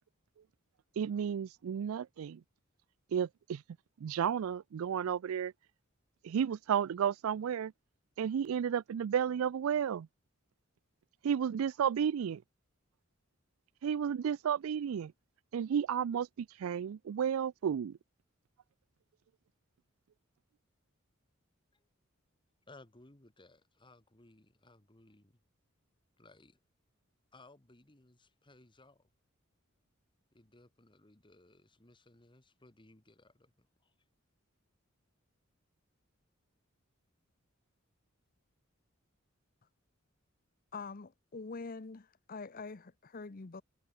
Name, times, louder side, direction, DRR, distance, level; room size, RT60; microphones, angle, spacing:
voice 1, 1.0-2.4 3.1-3.6 4.0-5.5 6.2-7.7 8.2-10.1 11.2-12.4 13.8-15.1 15.5-18.0, right 8 dB, 85° right, 0.4 m, -32 dB
voice 2, 22.7-25.4 26.2-26.6 27.3-29.1 30.3-33.9, left 2 dB, 25° left, 1.8 m, -61 dB
voice 3, 40.7-43.6, left 4 dB, 45° left, 0.8 m, -45 dB
head